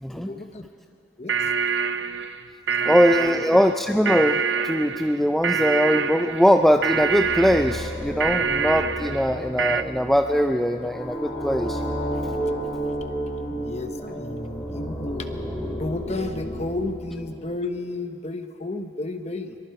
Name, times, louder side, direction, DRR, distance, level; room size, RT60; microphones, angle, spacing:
voice 1, 0.1-0.7 1.2-1.5 2.8-3.4 13.5-19.6, left 2 dB, 35° left, 7 dB, 1.1 m, -33 dB
sound 1, 1.3-9.8, right 6 dB, 65° right, 0.6 m, -26 dB
voice 2, 2.8-11.8, equal, ahead, 6 dB, 0.4 m, -21 dB
sound 2, 6.8-17.9, equal, 15° left, 3.1 m, -32 dB
24.0 x 23.0 x 4.8 m, 2.4 s
head